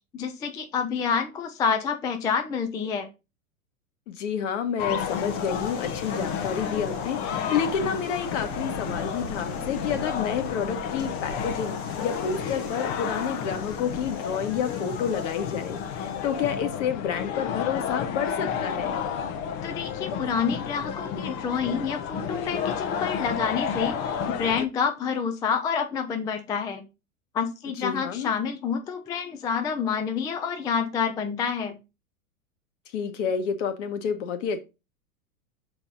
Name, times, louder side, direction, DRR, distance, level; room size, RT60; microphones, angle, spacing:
voice 1, 0.1-3.1 19.6-24.1 24.4-26.8 27.3-31.8, left 6 dB, 10° left, 6 dB, 0.3 m, -28 dB
voice 2, 4.1-19.0 27.8-28.3 32.9-34.6, left 7 dB, 55° left, 9 dB, 1.3 m, -29 dB
sound 1, 4.8-24.7, left 7 dB, 40° left, 0.7 m, -31 dB
sound 2, 5.0-16.6, left 1 dB, 85° left, 2.3 m, -43 dB
5.8 x 4.2 x 3.9 m, 0.27 s
hypercardioid pair, 100°, 43 cm